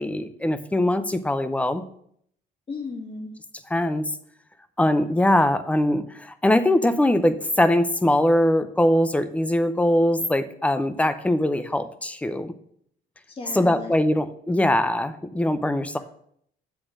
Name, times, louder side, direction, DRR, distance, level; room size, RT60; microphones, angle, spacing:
voice 1, 0.0-1.8 3.7-4.0 4.8-12.5 13.5-16.0, left 1 dB, 10° left, 12 dB, 0.5 m, -22 dB
voice 2, 2.7-3.3 13.3-13.9, left 4 dB, 35° left, 1 dB, 2.0 m, -35 dB
8.1 x 3.8 x 6.2 m, 0.67 s
cardioid pair, 110°, 17 cm